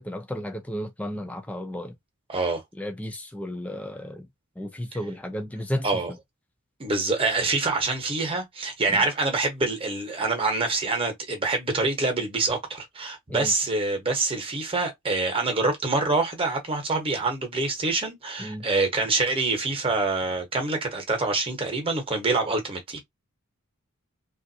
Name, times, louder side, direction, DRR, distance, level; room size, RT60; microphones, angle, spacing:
voice 1, 0.0-1.9 2.8-4.3 4.6-5.9 8.9-9.0 13.3-13.5 18.4-18.7, equal, 5° left, 0.5 m, -33 dB
voice 2, 2.3-2.6 5.8-6.1 6.8-23.0, right 3 dB, 25° right, 1.0 m, -26 dB
3.4 x 2.5 x 2.7 m
head